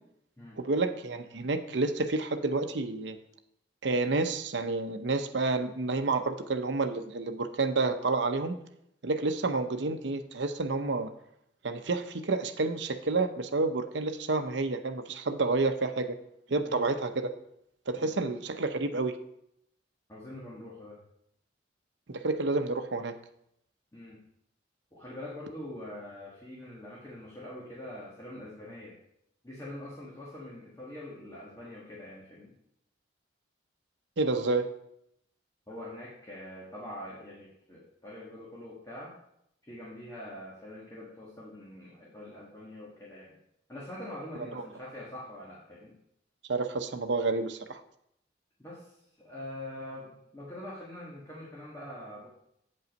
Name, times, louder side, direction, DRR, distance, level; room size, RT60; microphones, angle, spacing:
voice 1, 0.6-3.2 3.8-8.6 9.0-11.1 11.6-16.2 16.5-17.3 17.9-19.1 22.1-23.1 34.2-34.7 44.5-44.6 46.5-47.8, right 3 dB, 80° right, 7 dB, 0.7 m, -29 dB
voice 2, 16.5-16.8 17.9-18.2 20.1-21.0 23.9-24.2 24.9-29.0 29.4-32.5 35.7-39.2 39.6-43.4 43.7-45.9 48.6-52.3, left 1 dB, 20° left, -5 dB, 1.6 m, -44 dB
8.6 x 5.5 x 5.2 m, 0.75 s
head